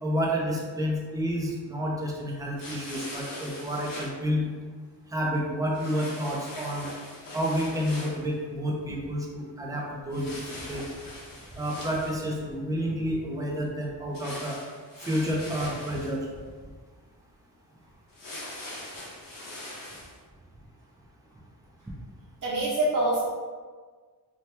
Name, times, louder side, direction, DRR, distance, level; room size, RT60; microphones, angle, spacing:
voice 1, 0.0-4.5 5.1-6.9 7.3-10.4 10.7-10.8 11.5-14.6 15.0-16.3, equal, 10° right, -2 dB, 0.5 m, -29 dB
sound 1, 2.6-4.1 5.7-8.2 10.1-12.4 14.1-16.2 18.1-20.1, left 1 dB, 55° left, 1.0 m, -41 dB
voice 2, 22.4-23.2, right 1 dB, 50° right, -6 dB, 1.1 m, -25 dB
2.9 x 2.2 x 3.2 m, 1.5 s
wide cardioid pair, 115°, 40 cm